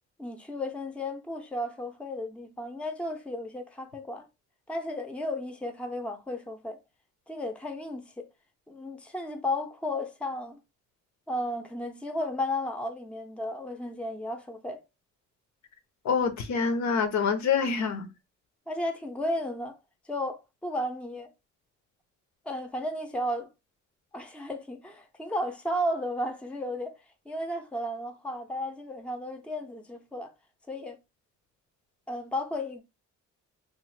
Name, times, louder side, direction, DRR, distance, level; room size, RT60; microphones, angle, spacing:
voice 1, 0.2-4.3 4.7-6.8 7.3-8.2 8.7-10.6 11.3-14.8 18.7-19.8 20.1-21.3 22.5-23.5 24.1-26.9 27.3-30.3 30.7-31.0 32.1-32.8, left 1 dB, 5° left, 0.6 m, -34 dB
voice 2, 16.0-18.1, left 5 dB, 65° left, 0.7 m, -26 dB
3.0 x 2.0 x 3.1 m
cardioid pair, 90°, 30 cm